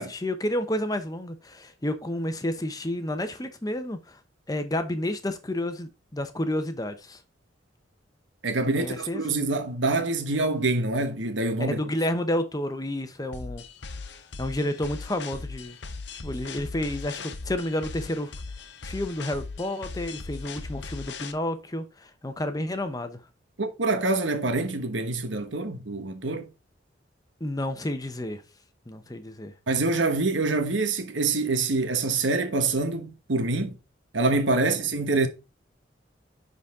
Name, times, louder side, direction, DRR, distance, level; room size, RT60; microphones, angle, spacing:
voice 1, 0.0-4.2 4.5-7.2 8.8-9.2 11.7-13.6 14.4-15.8 16.2-18.3 18.8-23.2 27.4-28.4 28.9-29.5 34.6-34.7, left 1 dB, 20° left, 0.8 m, -30 dB
voice 2, 8.4-11.8 23.6-26.5 29.7-33.8 34.1-35.3, right 3 dB, 80° right, 1.2 m, -26 dB
sound 1, 13.3-21.3, left 4 dB, 65° left, 0.8 m, -39 dB
10.0 x 4.1 x 3.6 m
head